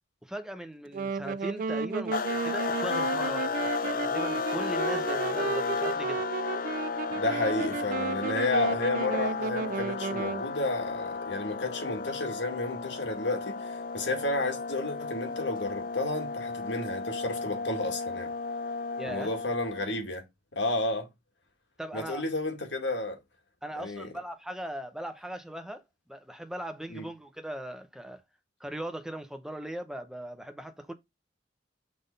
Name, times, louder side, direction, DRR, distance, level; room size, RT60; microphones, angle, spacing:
voice 1, 0.2-6.2 19.0-19.3 21.8-22.3 23.6-28.2 28.6-30.9, right 1 dB, 5° right, 0.9 m, -39 dB
Wind instrument woodwind instrument, 0.9-10.5, right 5 dB, 45° right, 0.3 m, -33 dB
sound 1, 2.1-20.0, left 4 dB, 50° left, 0.6 m, -33 dB
voice 2, 7.1-18.3 19.1-20.2 20.5-21.1 21.9-23.2 23.8-24.1 26.9-27.1, left 2 dB, 80° left, 2.1 m, -31 dB
6.1 x 3.6 x 5.3 m
head